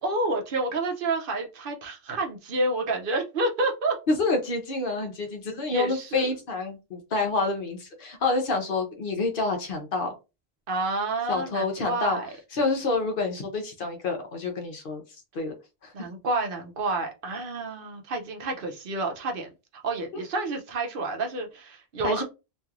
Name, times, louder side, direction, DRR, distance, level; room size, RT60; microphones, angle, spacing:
voice 1, 0.0-4.0 5.7-6.3 10.7-12.3 15.9-22.2, right 2 dB, 65° right, 0.8 m, -29 dB
voice 2, 4.1-10.1 11.3-12.2 12.5-15.0 15.3-15.5 15.8-15.9 22.0-22.2, left 3 dB, 60° left, 0.9 m, -28 dB
2.9 x 2.5 x 2.4 m
omnidirectional pair, 1.0 m